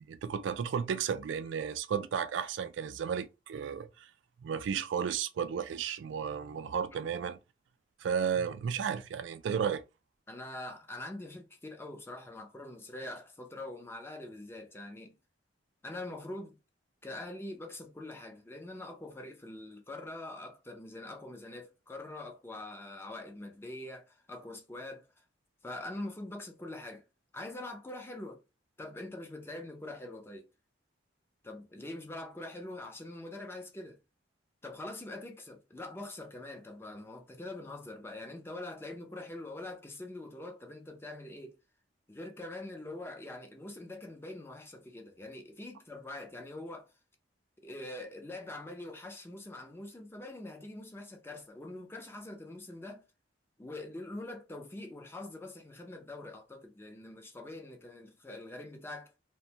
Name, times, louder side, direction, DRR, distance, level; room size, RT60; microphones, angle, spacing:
voice 1, 0.1-4.1 4.4-7.4 8.0-9.8, right 7 dB, 75° right, 0.3 m, -33 dB
voice 2, 10.3-15.1 15.8-16.6 17.0-25.1 25.6-27.1 27.3-28.4 28.8-30.5 31.4-34.0 34.6-41.6 42.1-46.9 47.6-53.0 53.6-59.1, left 2 dB, 15° left, 0.4 m, -44 dB
2.5 x 2.2 x 2.7 m
head